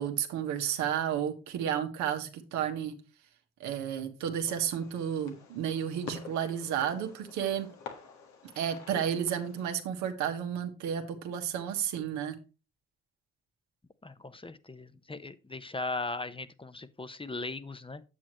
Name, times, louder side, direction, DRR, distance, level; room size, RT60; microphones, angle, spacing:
voice 1, 0.0-2.9 3.6-7.7 8.6-12.4, right 9 dB, 80° right, 1.4 m, -32 dB
Fireworks, 4.4-9.6, left 5 dB, 75° left, 1.7 m, -48 dB
voice 2, 14.0-18.0, left 3 dB, 20° left, 1.0 m, -38 dB
8.8 x 7.4 x 3.0 m
hypercardioid pair, 45°, 29 cm